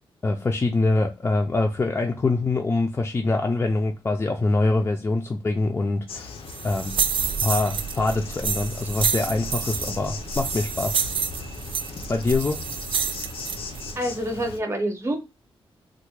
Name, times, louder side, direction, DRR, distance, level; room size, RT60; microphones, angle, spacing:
voice 1, 0.2-6.3 6.6-7.0 7.4-11.0 12.1-12.6, left 2 dB, 25° left, 0.3 m, -24 dB
Insect, 6.1-14.6, left 4 dB, 80° left, 0.5 m, -38 dB
sound 1, 6.5-13.9, right 6 dB, 65° right, 0.4 m, -28 dB
voice 2, 14.0-15.2, right 1 dB, 30° right, 0.7 m, -27 dB
3.4 x 2.1 x 3.0 m
wide cardioid pair, 155°, 9 cm